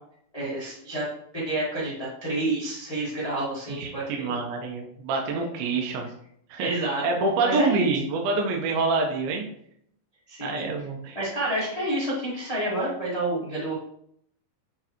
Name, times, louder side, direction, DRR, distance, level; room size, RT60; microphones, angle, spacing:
voice 1, 0.3-1.0 1.3-4.4 5.3-5.5 6.6-7.0 7.4-7.9 10.3-10.6 11.1-13.7, right 1 dB, 45° left, -8 dB, 0.4 m, -29 dB
voice 2, 3.7-6.1 6.5-6.7 7.0-9.4 10.4-11.2, right 3 dB, 75° right, 1 dB, 2.7 m, -26 dB
7.1 x 4.6 x 3.0 m, 0.69 s
omnidirectional pair, 4.4 m